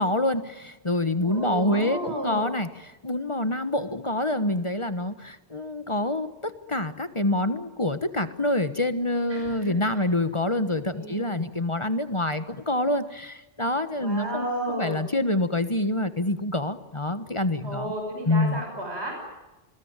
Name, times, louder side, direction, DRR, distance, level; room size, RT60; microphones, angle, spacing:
voice 1, 0.0-2.7 3.0-17.9 18.3-18.6, left 1 dB, 30° left, 11 dB, 1.4 m, -26 dB
voice 2, 1.2-2.5 9.3-10.0 10.9-11.4 14.0-15.0 17.6-19.2, right 1 dB, 75° right, 3 dB, 6.5 m, -33 dB
29.5 x 21.0 x 9.1 m, 1.0 s
omnidirectional pair, 1.1 m